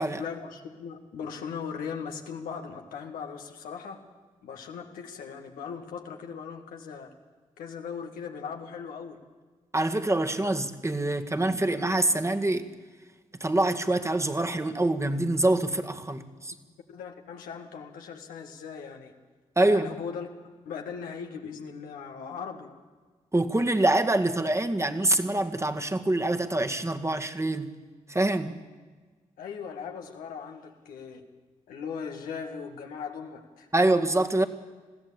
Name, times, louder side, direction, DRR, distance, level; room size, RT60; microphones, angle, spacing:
voice 1, 0.2-4.1 4.4-7.1 7.6-9.2 16.9-19.1 19.6-20.3 20.7-22.7 29.4-31.2 31.7-33.7, left 6 dB, 85° left, 1.8 m, -39 dB
voice 2, 9.7-12.7 13.4-16.5 19.6-19.9 23.3-27.7 28.1-28.6 33.7-34.5, right 2 dB, 20° right, 1.8 m, -25 dB
21.0 x 15.0 x 8.7 m
supercardioid pair, 40°, 14 cm